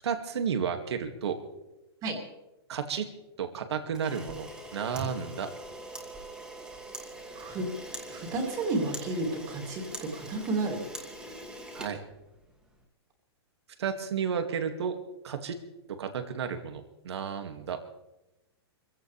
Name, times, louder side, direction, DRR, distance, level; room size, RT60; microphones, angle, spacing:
voice 1, 0.0-1.4 2.7-3.1 3.4-5.5 11.7-12.0 13.8-15.0 15.2-15.6 16.0-17.8, right 7 dB, 80° right, 6 dB, 2.3 m, -32 dB
Camera, 3.9-12.7, right 1 dB, 5° right, 2.5 m, -43 dB
voice 2, 7.3-7.7 8.1-10.8, right 2 dB, 25° right, 2 dB, 2.9 m, -31 dB
25.0 x 16.0 x 3.5 m, 0.96 s
hypercardioid pair, 155°, 14 cm